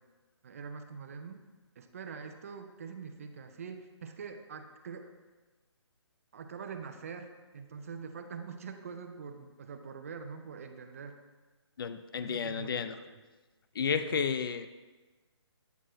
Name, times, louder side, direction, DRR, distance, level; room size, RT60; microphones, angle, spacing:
voice 1, 0.4-1.4 1.8-5.1 6.3-11.2 12.2-13.2 13.9-14.2, right 5 dB, 30° right, 6 dB, 0.5 m, -44 dB
voice 2, 11.8-13.0 13.8-14.7, left 6 dB, 50° left, 11 dB, 0.4 m, -32 dB
9.0 x 6.5 x 3.1 m, 1.3 s
hypercardioid pair, 165°, 15 cm